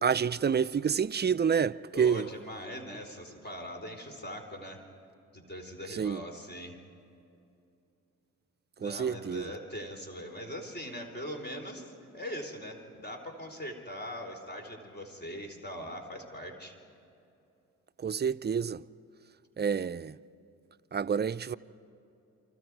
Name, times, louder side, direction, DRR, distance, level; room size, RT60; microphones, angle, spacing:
voice 1, 0.0-2.3 5.9-6.2 8.8-9.4 18.0-18.8 19.6-20.1 20.9-21.6, right 7 dB, 30° right, 0.5 m, -28 dB
voice 2, 1.9-4.8 5.3-6.8 8.8-16.7, equal, 30° left, 3.5 m, -41 dB
29.5 x 25.0 x 4.7 m
cardioid pair, 65°, 34 cm